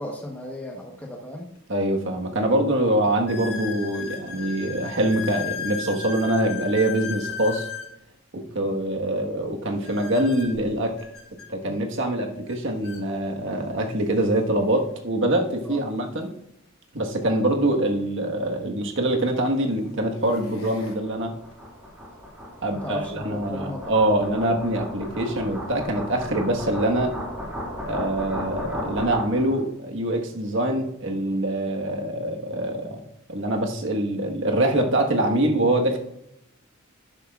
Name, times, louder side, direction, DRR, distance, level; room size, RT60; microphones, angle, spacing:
voice 1, 0.0-1.5 15.7-15.8 22.7-23.9, left 1 dB, 5° left, -1 dB, 1.0 m, -36 dB
sound 1, 1.5-1.6 2.3-2.4 3.3-7.9 9.8-11.5 12.5-12.6 12.8-13.0 13.8-13.9 16.1-16.2 18.3-18.4 19.1-19.4 20.0-20.9, left 7 dB, 90° left, 2.9 m, -36 dB
voice 2, 1.7-7.7 8.3-11.0 11.5-16.3 16.9-21.3 22.6-27.2 27.8-33.0 33.3-36.0, right 1 dB, 60° right, 2 dB, 1.4 m, -24 dB
sound 2, 19.6-29.6, equal, 10° right, 3.6 m, -36 dB
12.0 x 9.7 x 2.4 m, 0.80 s
head